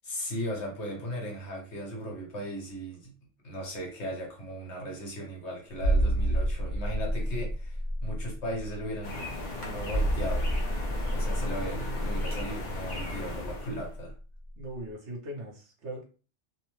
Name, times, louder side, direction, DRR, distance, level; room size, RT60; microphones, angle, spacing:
voice 1, 0.0-3.1 3.4-10.5 11.1-14.1, equal, 70° left, 1.3 m, -37 dB
sound 1, 5.8-14.2 14.4-14.6, right 1 dB, 50° right, 0.8 m, -30 dB
sound 2, 9.0-13.9, left 1 dB, 45° left, 0.8 m, -37 dB
voice 2, 14.6-16.0, right 1 dB, 70° right, 1.2 m, -39 dB
3.0 x 2.1 x 3.1 m
omnidirectional pair, 1.2 m